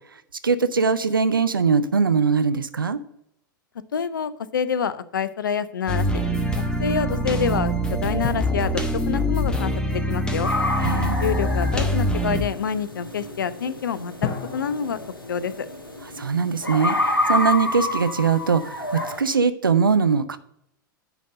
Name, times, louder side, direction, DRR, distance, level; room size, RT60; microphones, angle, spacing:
voice 1, 0.4-3.0 10.8-11.2 16.2-20.4, right 5 dB, 80° right, 12 dB, 0.6 m, -21 dB
voice 2, 3.9-6.1 6.8-8.8 9.1-10.5 11.2-15.0 15.3-15.5, left 7 dB, 70° left, 16 dB, 0.6 m, -27 dB
sound 1, 5.9-12.4, equal, 10° left, 1.1 m, -24 dB
sound 2, 8.2-10.9 14.2-16.8 17.1-17.2, left 6 dB, 25° left, 0.9 m, -37 dB
sound 3, 10.4-19.2, left 2 dB, 85° left, 1.2 m, -29 dB
10.0 x 4.1 x 6.5 m, 0.74 s
figure-of-eight pair, 95°, 11 cm